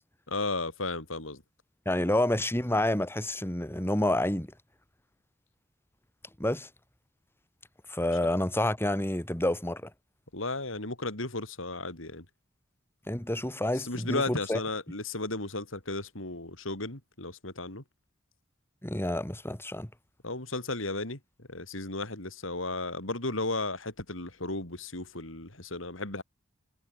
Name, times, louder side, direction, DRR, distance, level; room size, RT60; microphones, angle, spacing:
voice 1, 0.3-1.4 10.3-12.2 13.7-17.8 20.2-26.2, left 2 dB, 75° left, 5.0 m, -34 dB
voice 2, 1.9-4.5 6.4-6.7 7.9-9.9 13.1-14.6 18.8-19.9, left 1 dB, 10° left, 2.4 m, -28 dB
head